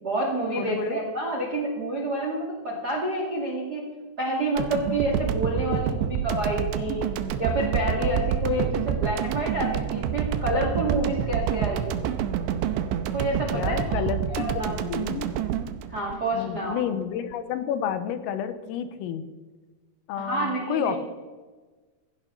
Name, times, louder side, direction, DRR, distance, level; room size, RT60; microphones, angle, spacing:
voice 1, 0.0-3.8 4.2-7.0 7.4-11.9 13.1-14.0 14.3-14.8 15.9-16.8 20.2-21.0, right 1 dB, 45° right, -1 dB, 1.2 m, -28 dB
voice 2, 0.6-1.0 13.5-15.3 16.3-19.2 20.1-21.0, left 8 dB, 80° left, 10 dB, 3.6 m, -30 dB
sound 1, 4.6-16.8, right 9 dB, 80° right, 2.7 m, -28 dB
16.0 x 15.0 x 3.9 m, 1.3 s
omnidirectional pair, 5.9 m